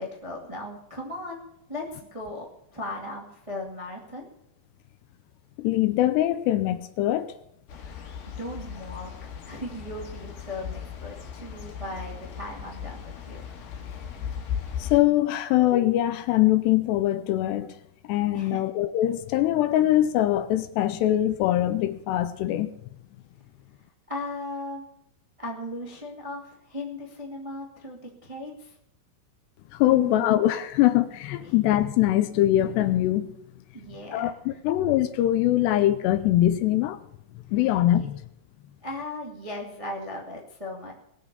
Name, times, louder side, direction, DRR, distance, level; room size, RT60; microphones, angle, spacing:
voice 1, 0.0-1.4 1.7-2.5 2.7-4.3 7.8-13.4 18.3-18.6 24.1-24.9 25.4-28.7 29.9-30.4 33.7-34.6 37.6-38.1 38.8-40.9, left 1 dB, 25° right, -2 dB, 0.6 m, -37 dB
voice 2, 5.6-7.3 14.8-17.7 18.1-22.7 29.7-33.3 34.1-37.0 37.5-38.2, left 14 dB, 80° left, 10 dB, 2.6 m, -23 dB
sound 1, 7.7-15.0, left 8 dB, 60° left, 3.4 m, -37 dB
20.5 x 7.1 x 7.0 m, 0.76 s
omnidirectional pair, 5.2 m